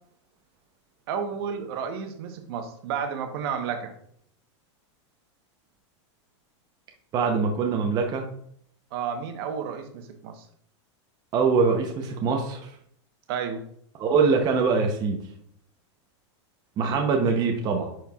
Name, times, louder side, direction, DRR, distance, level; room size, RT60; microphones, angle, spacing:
voice 1, 1.1-3.9 8.9-10.4 13.3-13.6, right 7 dB, 55° right, 6 dB, 1.1 m, -31 dB
voice 2, 7.1-8.3 11.3-12.7 14.0-15.2 16.8-17.9, right 5 dB, 25° right, 2 dB, 0.7 m, -23 dB
10.0 x 4.5 x 2.3 m, 0.66 s
supercardioid pair, 155°, 15 cm